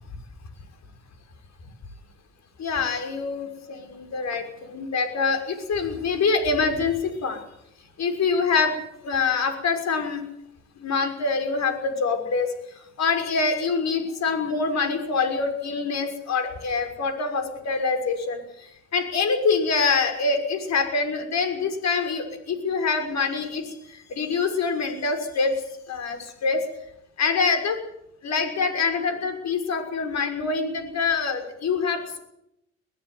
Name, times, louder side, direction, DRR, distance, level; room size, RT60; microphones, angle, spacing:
voice 1, 2.6-7.4 8.0-8.8 9.0-10.2 10.8-25.5 25.9-26.6 27.2-27.8 28.2-32.2, left 4 dB, 60° left, 5 dB, 5.9 m, -25 dB
21.5 x 14.5 x 9.6 m, 0.79 s
cardioid pair, 90°, 30 cm